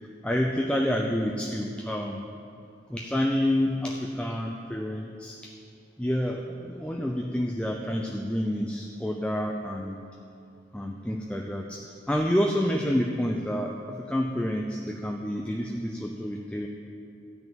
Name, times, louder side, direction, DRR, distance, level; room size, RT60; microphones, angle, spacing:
voice 1, 0.2-2.2 2.9-5.5 6.0-10.0 10.7-16.7, equal, 5° left, 1 dB, 0.5 m, -28 dB
13.0 x 6.0 x 9.1 m, 2.5 s
head